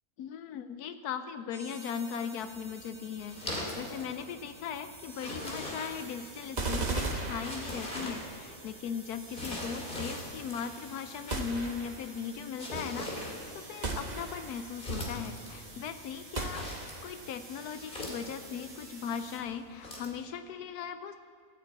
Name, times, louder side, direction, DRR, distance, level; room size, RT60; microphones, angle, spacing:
voice 1, 0.2-13.1 13.5-16.6 17.0-21.2, left 7 dB, 80° left, 9 dB, 1.1 m, -38 dB
sound 1, 1.5-19.4, right 2 dB, 85° right, 3.1 m, -50 dB
sound 2, 2.4-20.2, left 1 dB, 35° left, 2.7 m, -43 dB
sound 3, 6.6-8.2 11.3-12.2 13.8-14.7 16.3-17.2, right 3 dB, 30° right, 1.2 m, -36 dB
14.0 x 9.2 x 8.6 m, 2.2 s
omnidirectional pair, 1.6 m